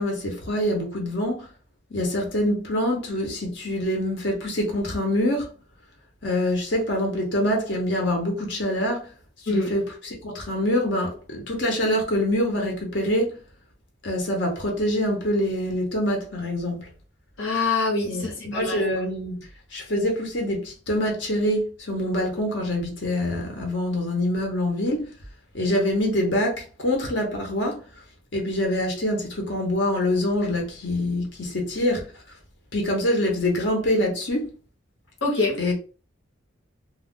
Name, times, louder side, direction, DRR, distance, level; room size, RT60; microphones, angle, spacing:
voice 1, 0.0-1.5 1.9-5.5 6.2-9.1 9.4-13.4 14.0-16.9 18.0-25.1 25.5-27.8 28.3-32.1 32.7-34.5 35.6-35.8, left 1 dB, 65° left, 0.9 m, -25 dB
voice 2, 17.4-18.8 35.2-35.6, left 3 dB, 80° left, 1.2 m, -25 dB
2.4 x 2.2 x 3.5 m
head